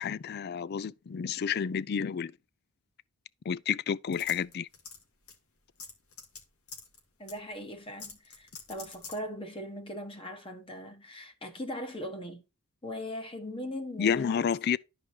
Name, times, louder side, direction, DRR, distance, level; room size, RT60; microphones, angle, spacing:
voice 1, 0.0-2.3 3.5-4.7 14.0-14.8, left 7 dB, 45° left, 0.3 m, -30 dB
sound 1, 4.1-5.0 5.3-5.4 5.8-6.4 6.7-7.0 7.3-7.4 8.0-9.2, left 5 dB, 75° left, 2.3 m, -44 dB
voice 2, 7.2-12.4 12.8-14.5, left 1 dB, 25° left, 1.3 m, -40 dB
12.5 x 4.9 x 2.9 m
head